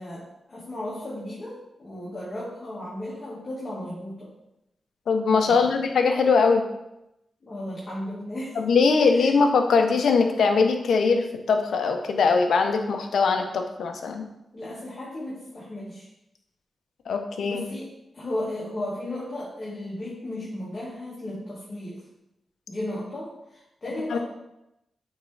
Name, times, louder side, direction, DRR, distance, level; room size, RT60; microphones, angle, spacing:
voice 1, 0.0-4.3 5.5-5.8 7.4-8.6 9.1-9.3 14.5-16.1 17.4-22.0 22.7-24.2, left 1 dB, 40° left, -7 dB, 1.8 m, -35 dB
voice 2, 5.1-6.6 8.6-14.3 17.1-17.6 24.1-24.2, left 4 dB, 80° left, 5 dB, 0.7 m, -21 dB
8.1 x 3.6 x 3.3 m, 0.87 s
cardioid pair, 65°, 0 cm